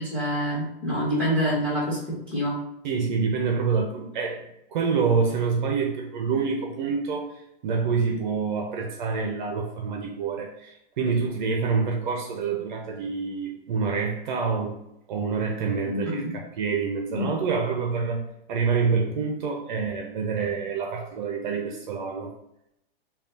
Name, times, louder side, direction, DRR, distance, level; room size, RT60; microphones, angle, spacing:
voice 1, 0.0-2.6 15.8-16.3 17.1-17.3, equal, 5° left, -6 dB, 1.4 m, -27 dB
voice 2, 2.8-4.4 4.7-7.3 7.6-14.8 15.1-16.2 16.6-22.3, right 5 dB, 50° right, 1 dB, 0.6 m, -27 dB
5.1 x 2.4 x 2.7 m, 0.81 s
hypercardioid pair, 155°, 29 cm